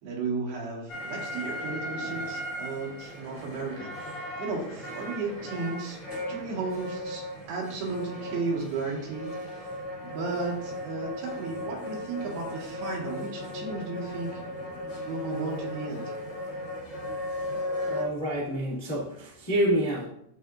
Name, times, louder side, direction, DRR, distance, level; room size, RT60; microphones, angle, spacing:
voice 1, 0.0-6.0 6.3-9.7 10.0-14.4 14.9-16.1, right 3 dB, 75° right, -2 dB, 3.5 m, -34 dB
sound 1, 0.9-18.0, left 1 dB, 45° left, 1.1 m, -37 dB
voice 2, 17.8-20.1, right 1 dB, 20° left, -6 dB, 0.7 m, -28 dB
12.5 x 4.3 x 2.5 m, 0.74 s
omnidirectional pair, 4.6 m